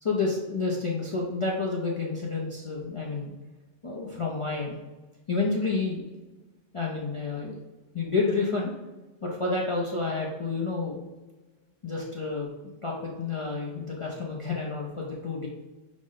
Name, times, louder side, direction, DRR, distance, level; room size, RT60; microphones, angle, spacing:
voice 1, 0.0-3.3 3.8-4.8 5.3-6.0 6.7-7.6 7.9-8.7 9.2-11.0 11.8-12.5 12.8-15.5, left 3 dB, 45° left, -3 dB, 0.4 m, -29 dB
6.0 x 2.0 x 3.8 m, 1.2 s
omnidirectional pair, 1.3 m